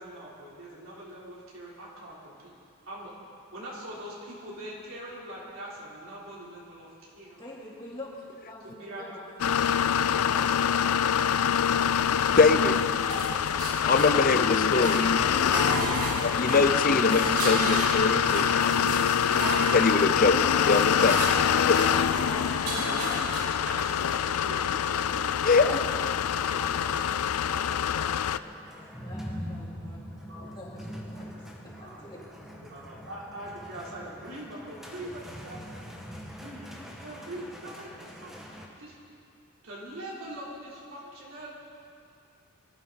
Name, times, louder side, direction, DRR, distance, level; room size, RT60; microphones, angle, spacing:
voice 1, 0.0-2.5 2.8-3.1 3.5-7.5 8.6-9.2 13.2-13.5 18.7-19.6 21.0-25.5 25.9-26.6 29.8-30.0 30.3-31.3 31.7-32.1 32.5-35.9 36.4-36.7 37.0-38.9 39.6-41.5, right 1 dB, 65° right, -7 dB, 3.6 m, -43 dB
voice 2, 7.4-10.6 25.1-25.2 25.6-25.8 26.0-27.7 27.9-28.6 28.9-30.0 30.3-31.5 31.8-32.2, left 2 dB, 20° left, -6 dB, 3.4 m, -45 dB
sound 1, 9.4-28.4, left 8 dB, 80° left, 0.4 m, -25 dB
voice 3, 12.4-12.8 13.9-15.1 16.2-19.0 19.7-21.2 22.8-22.9 25.4-25.7, left 3 dB, 40° left, 10 dB, 0.6 m, -23 dB
sound 2, 13.1-14.4 14.8-24.2, right 2 dB, 90° right, 3.3 m, -34 dB
sound 3, 26.4-38.7, equal, ahead, 1.5 m, -43 dB
24.0 x 14.0 x 4.0 m, 2.5 s
head